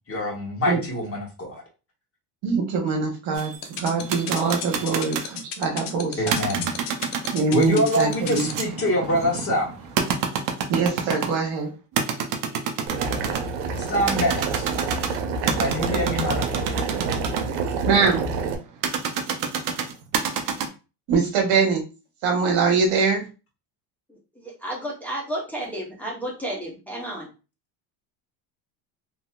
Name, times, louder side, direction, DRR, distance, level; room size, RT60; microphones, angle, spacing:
voice 1, 0.1-1.6 6.2-6.7 7.5-9.8 13.9-14.7 15.6-16.7, equal, 30° left, -2 dB, 1.4 m, -25 dB
voice 2, 2.4-3.5 3.8-6.4 7.3-8.5 10.7-11.7 17.8-18.2 21.1-21.8 22.2-23.3, right 5 dB, 65° right, 2 dB, 1.2 m, -23 dB
sound 1, 3.3-5.4 6.2-11.5 12.0-13.5 14.0-17.4 18.8-20.7, right 6 dB, 45° right, 0.6 m, -28 dB
sound 2, 3.6-8.5, left 9 dB, 60° left, 0.7 m, -32 dB
Boiling, 12.9-18.6, right 4 dB, 85° right, 0.8 m, -28 dB
voice 3, 24.1-27.3, right 1 dB, 5° left, -3 dB, 0.9 m, -32 dB
3.0 x 2.7 x 2.3 m, 0.31 s
supercardioid pair, 105°, 48 cm